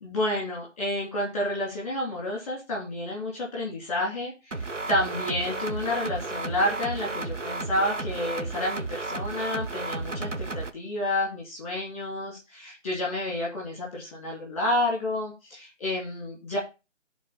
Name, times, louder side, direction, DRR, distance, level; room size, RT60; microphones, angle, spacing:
voice 1, 0.0-16.6, left 1 dB, 10° left, -3 dB, 2.6 m, -30 dB
sound 1, 4.5-10.7, right 3 dB, 75° right, 1.3 m, -33 dB
10.0 x 4.2 x 7.1 m, 0.27 s
figure-of-eight pair, 170°, 37 cm